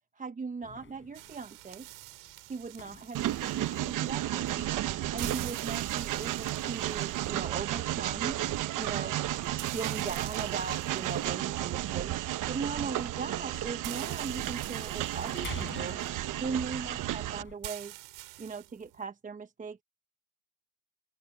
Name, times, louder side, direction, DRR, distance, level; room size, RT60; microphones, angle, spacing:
voice 1, 0.2-1.9 2.5-4.7 5.1-8.4 8.8-9.2 9.6-16.0 16.4-17.9 18.4-19.8, right 4 dB, 20° right, 1.0 m, -39 dB
sound 1, 0.6-17.6, left 6 dB, 30° left, 4.3 m, -52 dB
sound 2, 1.1-19.0, right 20 dB, 80° right, 5.2 m, -48 dB
Train, 3.1-17.4, right 14 dB, 55° right, 1.1 m, -33 dB
open air
cardioid pair, 105°, 37 cm